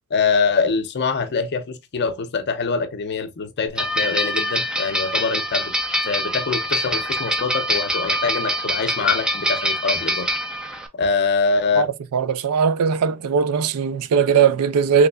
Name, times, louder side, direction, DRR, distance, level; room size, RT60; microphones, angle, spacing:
voice 1, 0.1-5.7 6.1-10.3 10.9-11.9, left 5 dB, 50° left, 0.5 m, -24 dB
sound 1, 3.8-10.9, equal, 5° right, 0.4 m, -24 dB
voice 2, 12.1-15.1, right 6 dB, 85° right, 0.4 m, -19 dB
3.4 x 3.1 x 2.2 m
head